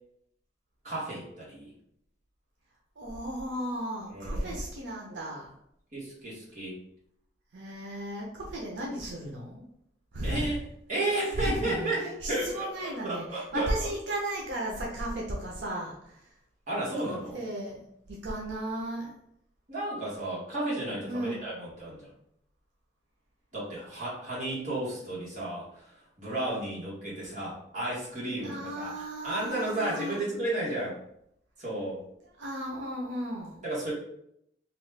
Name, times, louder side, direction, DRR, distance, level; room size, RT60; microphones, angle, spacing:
voice 1, 0.8-1.7 4.1-4.6 5.9-6.8 10.2-10.6 10.9-13.9 16.7-17.4 19.7-22.1 23.5-31.0 31.6-32.0 33.6-33.9, right 1 dB, 45° right, -7 dB, 1.4 m, -33 dB
voice 2, 3.0-5.5 7.5-9.6 10.1-10.6 11.4-11.9 12.2-16.3 17.0-17.8 18.1-19.2 21.1-21.5 27.3-27.4 28.4-30.3 32.4-33.6, right 1 dB, 90° right, -2 dB, 0.6 m, -35 dB
2.9 x 2.3 x 3.2 m, 0.74 s
head